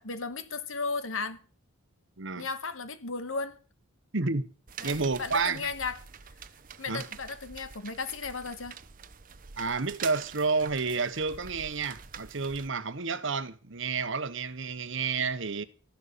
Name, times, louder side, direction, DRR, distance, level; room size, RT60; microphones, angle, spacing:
voice 1, 0.0-1.4 2.4-3.6 4.8-6.0 6.8-8.8, left 4 dB, 75° left, 1.5 m, -35 dB
voice 2, 4.1-4.5 4.8-5.7 6.9-7.0 9.6-15.6, right 4 dB, 65° right, 1.1 m, -30 dB
sound 1, 4.7-12.7, right 7 dB, 45° right, 0.9 m, -45 dB
14.0 x 11.0 x 6.8 m
head